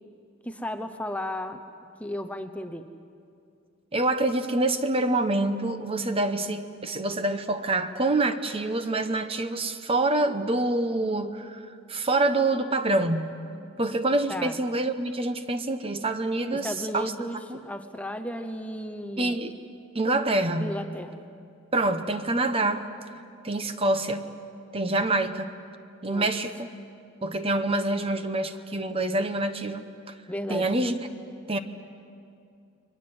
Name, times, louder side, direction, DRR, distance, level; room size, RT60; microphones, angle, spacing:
voice 1, 0.4-1.6 2.0-2.9 14.3-14.6 16.5-19.3 20.6-21.2 26.1-26.3 30.3-30.7, left 1 dB, 5° left, 7 dB, 0.8 m, -34 dB
voice 2, 3.9-13.3 13.8-17.1 17.5-17.6 19.2-19.5 19.9-20.8 21.7-22.8 23.4-24.3 24.7-25.5 26.0-26.7 27.2-29.9 30.5-31.2 31.5-31.6, right 2 dB, 25° right, 9 dB, 1.0 m, -26 dB
30.0 x 23.0 x 7.8 m, 2.5 s
head